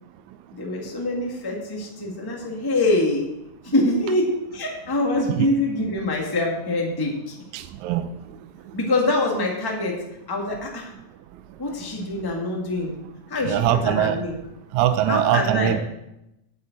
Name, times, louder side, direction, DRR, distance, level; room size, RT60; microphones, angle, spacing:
voice 1, 0.5-3.3 3.6-7.3 8.7-10.9 11.6-12.9 13.3-14.4 15.1-15.8, left 2 dB, 10° left, 0 dB, 1.1 m, -25 dB
voice 2, 7.5-8.0 13.5-14.2 14.7-15.8, right 11 dB, 80° right, 10 dB, 1.9 m, -21 dB
9.0 x 6.7 x 8.2 m, 0.89 s
omnidirectional pair, 3.5 m